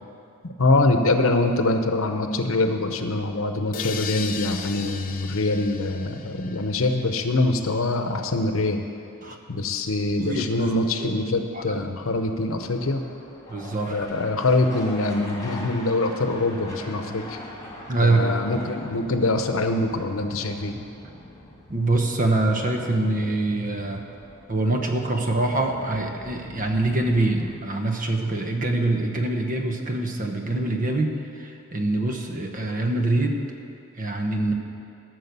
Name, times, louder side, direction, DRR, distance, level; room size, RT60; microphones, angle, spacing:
voice 1, 0.4-8.8 9.5-13.0 13.9-17.4 18.0-20.8, left 2 dB, 80° left, 6 dB, 0.8 m, -24 dB
sound 1, 3.7-7.5, left 7 dB, 40° left, 0.6 m, -37 dB
voice 2, 10.2-10.7 11.0-11.1 11.5-11.8 13.5-14.1 17.9-18.3 21.7-24.0 24.5-31.1 31.4-33.4 34.0-34.5, right 2 dB, 40° right, 3 dB, 1.0 m, -24 dB
sound 2, 10.5-27.6, left 1 dB, 15° left, 1.9 m, -43 dB
13.5 x 6.4 x 6.8 m, 2.7 s
head